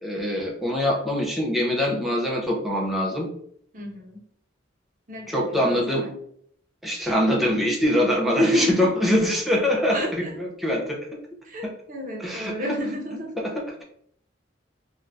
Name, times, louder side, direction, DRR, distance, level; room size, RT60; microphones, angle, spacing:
voice 1, 0.0-3.3 5.3-6.0 6.8-11.1 11.6-11.7 12.2-12.6 13.4-13.8, equal, ahead, -3 dB, 0.5 m, -24 dB
voice 2, 3.7-4.2 5.1-6.2 8.3-9.0 9.9-10.3 11.4-13.5, equal, 45° right, 0 dB, 0.7 m, -29 dB
2.6 x 2.3 x 3.3 m, 0.65 s
head